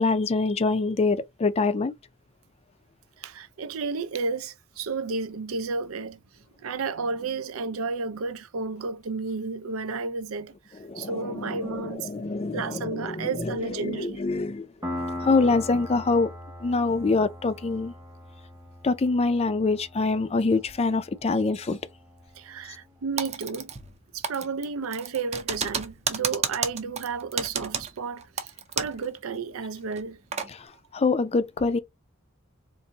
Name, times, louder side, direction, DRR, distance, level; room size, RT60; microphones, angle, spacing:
voice 1, 0.0-1.9 10.8-14.7 15.0-16.3 16.6-17.9 18.8-21.8 30.5-31.8, left 3 dB, 30° left, 0.4 m, -25 dB
voice 2, 3.2-6.2 6.6-12.1 12.5-14.2 22.3-23.7 24.1-30.2, right 4 dB, 85° right, 0.5 m, -32 dB
Piano, 14.8-22.2, left 1 dB, 15° right, 0.9 m, -40 dB
Typing, 23.2-24.0 24.2-29.1 29.3-29.4 29.9-30.5, right 6 dB, 35° right, 0.6 m, -31 dB
3.9 x 2.6 x 2.7 m
head